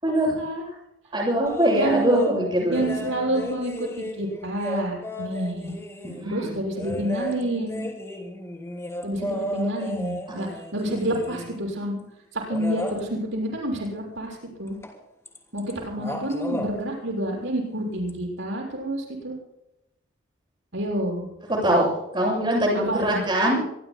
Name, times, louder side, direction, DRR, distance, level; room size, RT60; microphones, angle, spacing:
voice 1, 0.0-0.8 1.1-3.5 6.0-6.6 6.9-7.0 10.4-10.5 21.5-23.6, right 1 dB, 25° right, -2 dB, 7.4 m, -23 dB
sound 1, 1.5-2.4 2.7-6.3 6.8-11.6 12.5-13.0 14.8-15.0 15.3-15.7 16.0-16.7 18.1-18.2, equal, 15° left, 3.3 m, -33 dB
voice 2, 1.8-2.1 2.7-5.7 6.2-7.9 9.0-9.3 9.5-12.0 12.3-14.8 15.5-19.4 20.7-21.3 22.7-23.2, right 1 dB, 70° right, -1 dB, 6.5 m, -28 dB
26.0 x 22.0 x 2.2 m, 0.85 s
head